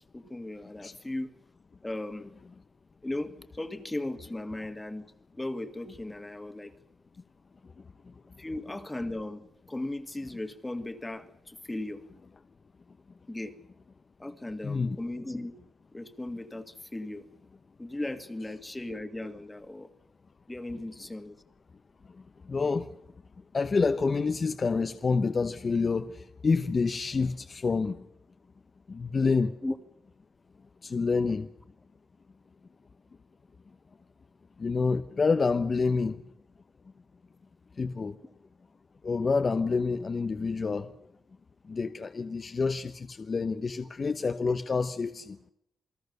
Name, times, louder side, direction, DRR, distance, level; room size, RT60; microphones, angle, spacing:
voice 1, 0.1-1.3 1.8-2.3 3.0-5.1 5.3-6.7 8.4-12.0 13.3-13.6 14.2-15.6 15.9-17.3 17.8-19.9 20.5-21.4 29.6-29.8, left 1 dB, 15° left, 2.0 m, -37 dB
voice 2, 14.6-15.0 22.5-23.0 23.5-28.1 28.9-29.6 30.8-31.5 34.6-36.2 37.8-38.2 39.0-40.9 41.7-45.4, left 4 dB, 40° left, 1.0 m, -28 dB
28.5 x 20.5 x 6.8 m
cardioid pair, 115°, 0 cm